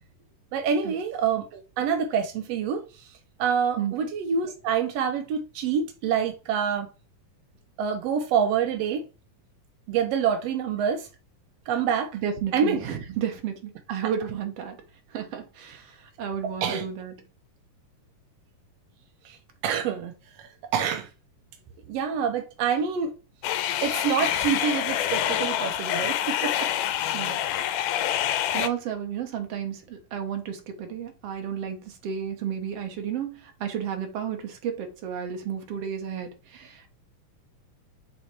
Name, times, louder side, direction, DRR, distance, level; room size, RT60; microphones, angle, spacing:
voice 1, 0.5-6.9 7.8-9.1 9.9-11.1 11.7-12.2 12.5-12.8 16.4-16.9 19.2-19.4 19.6-20.1 20.4-21.1 21.9-23.1 23.8-26.7, right 7 dB, 80° right, 1.5 m, -27 dB
voice 2, 12.2-14.8 15.1-17.1 27.1-27.4 28.5-36.9, right 8 dB, 60° right, 1.9 m, -32 dB
sound 1, 23.4-28.7, left 11 dB, 80° left, 2.1 m, -26 dB
7.1 x 4.2 x 3.3 m
omnidirectional pair, 3.9 m